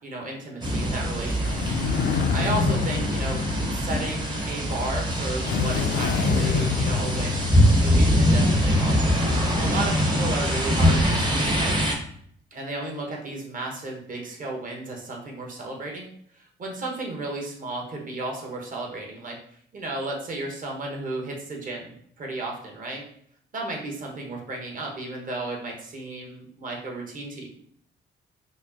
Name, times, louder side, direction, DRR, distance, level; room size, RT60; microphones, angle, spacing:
voice 1, 0.0-1.7 2.3-3.4 3.7-9.0 9.6-11.8 12.5-16.1 16.3-19.4 19.7-23.0 23.5-27.5, right 2 dB, 40° right, 0 dB, 1.1 m, -33 dB
sound 1, 0.6-11.9, equal, 20° right, 0.8 m, -23 dB
sound 2, 1.4-4.5 5.4-8.2, left 6 dB, 60° left, 0.4 m, -27 dB
5.0 x 2.0 x 2.8 m, 0.65 s
cardioid pair, 90°, 20 cm